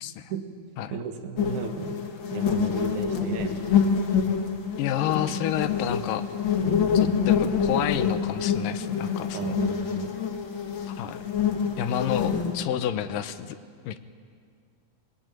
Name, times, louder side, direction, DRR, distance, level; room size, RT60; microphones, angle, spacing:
voice 1, 0.0-0.3 0.8-0.9 4.8-6.2 6.9-9.6 10.9-11.2 11.8-13.6 13.9-14.0, left 11 dB, 80° left, 11 dB, 2.5 m, -30 dB
voice 2, 0.9-2.0 2.3-3.8 6.6-6.8 9.3-10.2, right 7 dB, 65° right, 5 dB, 2.9 m, -34 dB
sound 1, 1.4-12.5, left 7 dB, 45° left, 1.8 m, -26 dB
22.5 x 19.5 x 9.1 m, 2.2 s
omnidirectional pair, 3.9 m